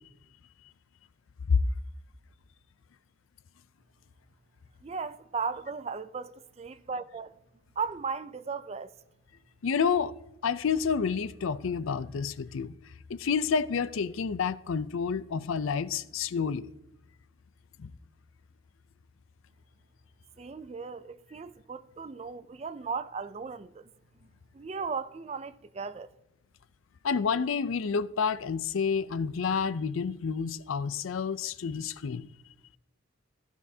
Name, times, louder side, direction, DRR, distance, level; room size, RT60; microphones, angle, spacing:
voice 1, 4.8-7.3 7.8-9.0 20.4-23.9 24.5-26.1, right 5 dB, 30° right, 0.3 m, -36 dB
voice 2, 9.6-10.1 10.4-12.8 13.1-16.7 17.8-17.9 27.0-32.3, left 6 dB, 75° left, 0.4 m, -29 dB
15.5 x 13.0 x 2.7 m
head